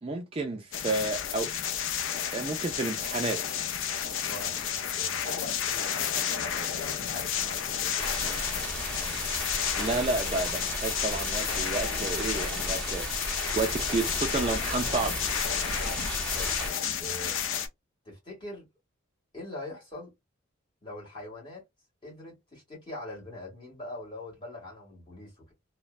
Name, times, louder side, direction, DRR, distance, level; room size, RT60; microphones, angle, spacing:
voice 1, 0.0-1.5 2.3-3.4 9.8-13.2 13.5-15.2, right 3 dB, 25° right, 0.4 m, -31 dB
sound 1, 0.7-17.7, left 8 dB, 65° left, 0.4 m, -32 dB
voice 2, 4.2-8.1 13.4-13.6 16.3-16.5 17.0-17.4 18.0-18.6 19.3-20.1 20.8-21.6 22.0-25.5, left 2 dB, 25° left, 1.7 m, -42 dB
sound 2, 8.0-16.7, right 1 dB, 5° left, 0.7 m, -35 dB
3.0 x 2.1 x 2.3 m
head